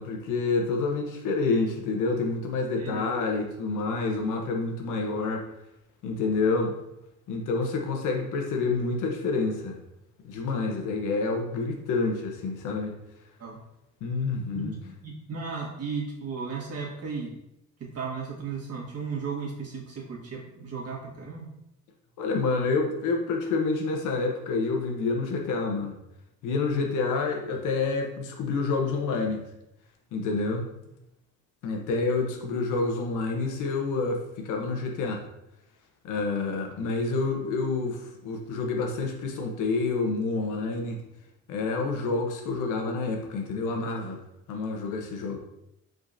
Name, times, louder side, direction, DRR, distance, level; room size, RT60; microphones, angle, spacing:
voice 1, 0.0-5.4 6.0-6.8 7.3-9.8 10.2-13.0 14.0-14.7 22.2-26.0 26.4-29.4 30.1-30.7 31.6-35.2 36.0-41.0 41.5-44.2 44.5-45.4, left 3 dB, 85° left, 2 dB, 0.9 m, -28 dB
voice 2, 14.5-17.3 17.9-21.5, right 5 dB, 55° right, -3 dB, 1.7 m, -35 dB
5.1 x 3.8 x 2.6 m, 0.84 s
cardioid pair, 90°, 30 cm